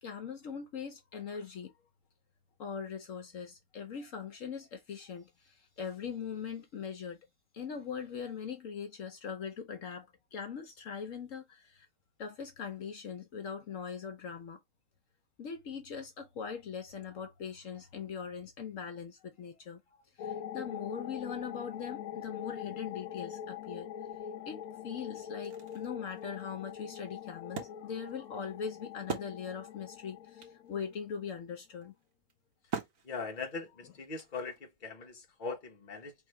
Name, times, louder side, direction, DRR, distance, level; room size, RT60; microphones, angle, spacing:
voice 1, 0.0-1.7 2.6-7.3 7.5-11.9 12.2-14.6 15.4-19.8 20.2-23.9 24.5-31.9, left 6 dB, 65° left, 1.2 m, -41 dB
sound 1, 20.2-31.3, left 9 dB, 85° left, 1.1 m, -44 dB
Wood, 24.7-24.8 25.2-29.9 30.1-30.2 30.4-34.8, right 6 dB, 70° right, 1.6 m, -44 dB
voice 2, 33.0-36.1, left 4 dB, 35° left, 1.2 m, -40 dB
4.7 x 3.6 x 3.1 m
omnidirectional pair, 1.5 m